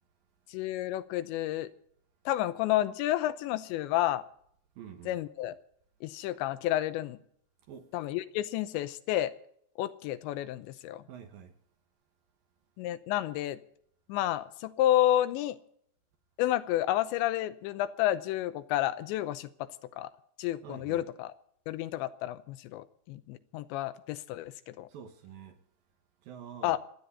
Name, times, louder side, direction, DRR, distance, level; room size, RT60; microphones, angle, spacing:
voice 1, 0.5-1.7 2.3-4.2 5.1-5.6 6.0-7.2 7.9-9.3 9.8-11.0 12.8-13.6 14.1-15.6 16.4-19.7 20.0-20.1 20.4-21.3 21.7-24.9 26.6-26.8, left 13 dB, 85° left, 3.1 m, -30 dB
voice 2, 4.8-5.2 7.7-7.9 11.1-11.6 20.6-21.1 24.9-25.6 26.2-26.8, right 8 dB, 65° right, 2.6 m, -47 dB
28.0 x 9.6 x 4.1 m
omnidirectional pair, 5.1 m